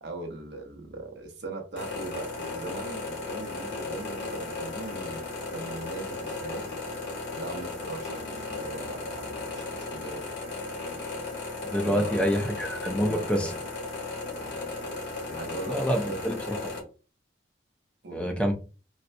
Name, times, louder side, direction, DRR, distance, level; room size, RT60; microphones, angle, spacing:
voice 1, 0.0-5.2 5.5-6.8 7.3-10.3 11.8-12.6 13.0-13.5 14.3-14.6 15.2-16.2 18.0-18.5, right 3 dB, 65° right, 0.8 m, -39 dB
sound 1, 1.8-16.8, left 3 dB, 65° left, 1.5 m, -35 dB
voice 2, 11.7-13.5 15.7-16.6 18.1-18.5, equal, 5° left, 0.5 m, -27 dB
4.2 x 2.2 x 2.5 m
head